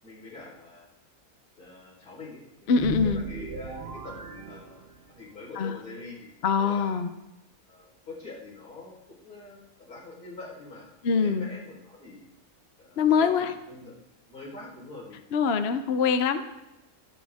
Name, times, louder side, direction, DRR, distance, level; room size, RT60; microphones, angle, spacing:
voice 1, 0.0-0.9 1.6-2.7 3.0-4.2 4.5-7.0 7.7-10.9 11.2-12.2 12.8-13.9 14.3-15.3, left 3 dB, 85° left, -5 dB, 4.9 m, -45 dB
voice 2, 2.7-3.2 5.6-5.8 6.4-7.1 11.0-11.5 13.0-13.5 15.3-16.4, left 6 dB, 50° left, 9 dB, 0.8 m, -23 dB
sound 1, 2.7-5.3, right 6 dB, 45° right, 1.0 m, -38 dB
23.5 x 8.9 x 3.6 m, 0.95 s
omnidirectional pair, 1.6 m